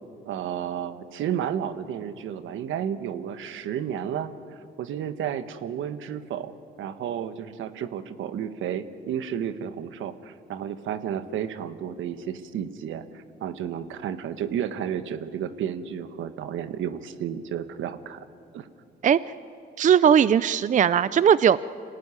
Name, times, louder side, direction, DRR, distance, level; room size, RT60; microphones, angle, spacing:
voice 1, 0.2-6.5 6.8-18.3 18.5-18.7, right 9 dB, 80° right, 11 dB, 1.2 m, -32 dB
voice 2, 19.8-21.6, right 8 dB, 40° right, 17 dB, 0.5 m, -18 dB
26.0 x 18.0 x 9.8 m, 2.6 s
cardioid pair, 90°, 20 cm